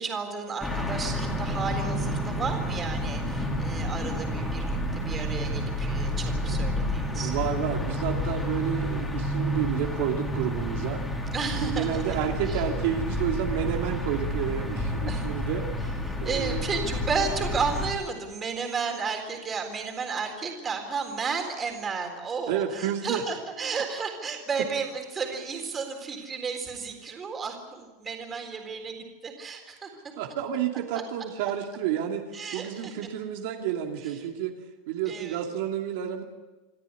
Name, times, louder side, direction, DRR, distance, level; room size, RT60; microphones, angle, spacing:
voice 1, 0.0-7.3 11.3-12.6 15.1-15.4 16.1-29.9 30.9-31.0 32.3-32.9 34.0-34.1 35.1-35.4, right 5 dB, 20° right, 4 dB, 4.0 m, -33 dB
sound 1, 0.6-17.9, left 1 dB, 10° left, 3.5 m, -30 dB
voice 2, 7.1-11.0 11.6-15.7 16.2-16.7 22.5-23.2 30.2-32.3 32.5-34.6 34.9-36.2, right 10 dB, 65° right, 2 dB, 2.5 m, -30 dB
27.5 x 13.0 x 9.7 m, 1.2 s
supercardioid pair, 165°, 0 cm